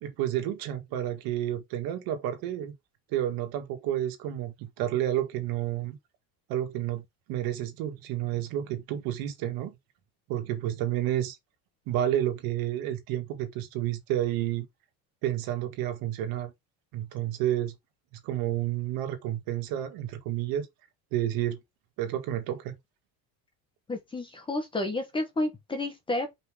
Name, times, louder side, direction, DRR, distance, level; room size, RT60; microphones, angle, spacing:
voice 1, 0.0-2.7 3.1-6.0 6.5-7.0 7.3-9.8 10.3-11.4 11.9-14.7 15.2-16.5 16.9-17.7 18.2-20.7 21.1-21.6 22.0-22.7, right 12 dB, 60° right, 2.0 m, -30 dB
voice 2, 23.9-26.3, left 2 dB, 10° left, 1.1 m, -31 dB
5.3 x 4.0 x 4.8 m
cardioid pair, 175°, 39 cm